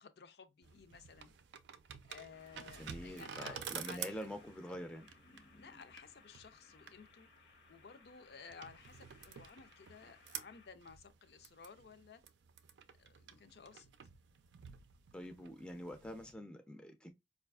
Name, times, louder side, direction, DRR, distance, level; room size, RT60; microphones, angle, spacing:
voice 1, 0.0-1.3 2.1-4.3 5.6-7.3 7.7-12.2 13.0-13.9, left 5 dB, 65° left, 0.4 m, -56 dB
sound 1, 0.6-16.3, right 8 dB, 85° right, 0.4 m, -51 dB
sound 2, 2.3-10.7, left 3 dB, 85° left, 0.9 m, -63 dB
voice 2, 2.8-5.1 15.1-17.1, equal, 5° left, 0.4 m, -46 dB
4.7 x 2.4 x 2.3 m
head